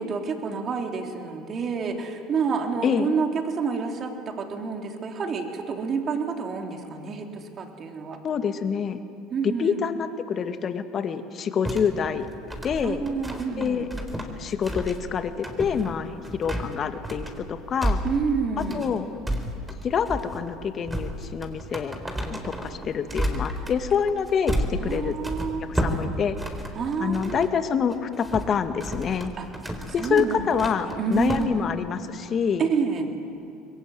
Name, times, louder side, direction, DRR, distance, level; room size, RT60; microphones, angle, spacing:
voice 1, 0.0-8.2 9.3-9.8 12.8-13.9 18.0-18.9 24.8-25.6 26.8-27.4 29.4-29.5 30.0-30.5 30.8-31.7 32.6-33.1, right 5 dB, 40° right, 3 dB, 3.7 m, -28 dB
voice 2, 8.2-9.0 9.4-12.3 12.6-13.0 13.6-13.9 14.4-18.0 18.7-19.1 19.8-25.1 25.7-26.4 27.0-29.3 29.9-32.7, left 7 dB, 40° left, 8 dB, 1.9 m, -26 dB
sound 1, 11.6-27.5 27.9-31.5, right 1 dB, 10° right, 4.2 m, -32 dB
25.0 x 21.5 x 9.4 m, 2.6 s
hypercardioid pair, 75°, 0 cm